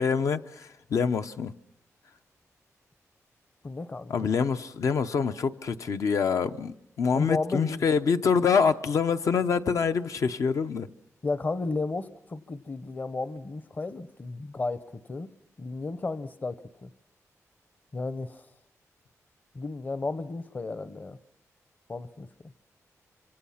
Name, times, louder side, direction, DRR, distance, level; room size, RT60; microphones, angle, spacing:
voice 1, 0.0-1.5 4.1-10.9, left 6 dB, 70° left, 0.9 m, -26 dB
voice 2, 3.6-4.1 7.1-7.8 11.2-15.3 15.6-16.9 17.9-18.4 19.5-21.2 21.9-22.3, left 3 dB, 30° left, 0.8 m, -33 dB
26.5 x 25.5 x 5.8 m
wide cardioid pair, 140°, 6 cm